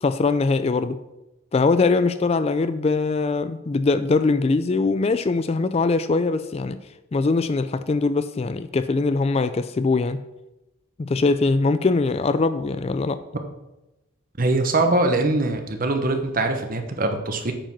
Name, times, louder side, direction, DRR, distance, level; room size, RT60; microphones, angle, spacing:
voice 1, 0.0-1.0 1.5-6.8 7.1-10.2 11.0-13.2, left 3 dB, 30° left, 12 dB, 0.3 m, -22 dB
voice 2, 14.4-17.5, right 2 dB, 45° right, 6 dB, 1.0 m, -22 dB
8.9 x 5.1 x 6.0 m, 0.96 s
head